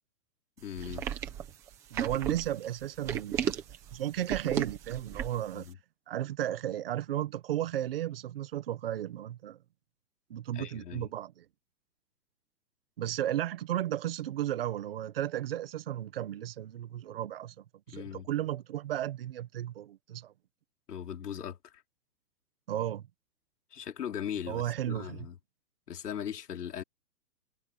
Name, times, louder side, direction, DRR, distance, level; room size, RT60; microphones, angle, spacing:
voice 1, 0.6-1.1 5.5-5.8 10.5-11.1 17.9-18.3 20.9-21.8 23.7-25.4 25.9-26.8, left 9 dB, 65° left, 3.6 m, -39 dB
sound 1, 0.8-5.5, right 10 dB, 5° right, 0.9 m, -34 dB
voice 2, 1.9-3.6 3.9-5.7 6.1-9.6 10.3-11.4 13.0-17.5 17.9-20.3 22.7-23.0 24.5-25.3, right 12 dB, 35° right, 1.4 m, -34 dB
hypercardioid pair, 175°, 50 cm